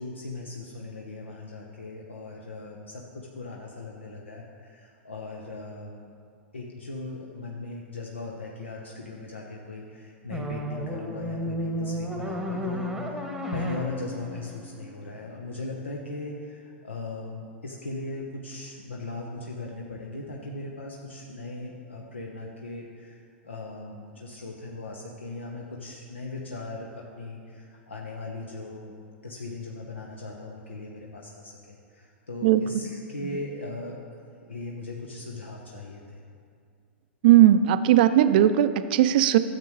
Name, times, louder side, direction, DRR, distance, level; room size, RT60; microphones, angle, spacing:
voice 1, 0.0-6.1 6.5-28.9 29.2-34.0 34.5-36.2, left 2 dB, 75° left, -1 dB, 0.9 m, -38 dB
sound 1, 10.3-15.4, equal, ahead, 1.1 m, -33 dB
voice 2, 37.2-39.4, right 12 dB, 50° right, 12 dB, 0.4 m, -18 dB
13.0 x 7.5 x 3.1 m, 2.3 s
figure-of-eight pair, 100°, 6 cm